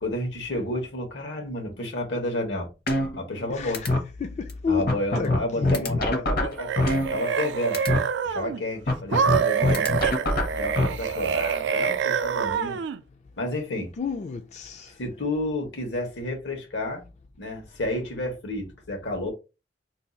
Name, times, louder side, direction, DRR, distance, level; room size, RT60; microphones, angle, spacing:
voice 1, 0.0-2.7 3.2-3.8 4.6-7.8 8.2-9.9 10.5-12.8 13.4-13.9 15.0-17.0 17.4-19.3, left 1 dB, 85° left, 1.1 m, -31 dB
sound 1, 2.9-3.5 3.7-4.0 4.5-4.6 4.9-7.5 7.7-8.0 8.9-10.9, left 2 dB, 60° left, 0.8 m, -23 dB
voice 2, 4.2-4.8 5.2-5.3 5.6-5.9 14.0-14.9, left 5 dB, 40° left, 0.3 m, -30 dB
sound 2, 6.4-8.6 9.1-13.0, right 7 dB, 75° right, 0.3 m, -26 dB
2.6 x 2.3 x 3.9 m
head